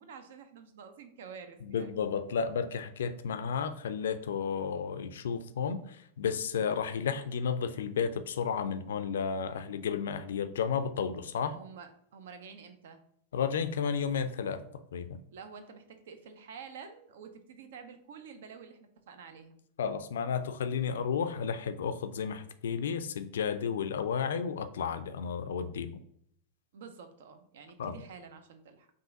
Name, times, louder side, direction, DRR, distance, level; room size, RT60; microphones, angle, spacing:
voice 1, 0.0-1.9 11.5-13.0 15.3-19.6 26.7-28.9, right 6 dB, 60° right, 9 dB, 0.5 m, -49 dB
voice 2, 1.6-11.6 13.3-14.6 14.9-15.2 19.8-26.0 27.8-28.0, left 6 dB, 60° left, 9 dB, 0.4 m, -32 dB
5.5 x 2.5 x 3.7 m, 0.68 s
figure-of-eight pair, 90°, 0 cm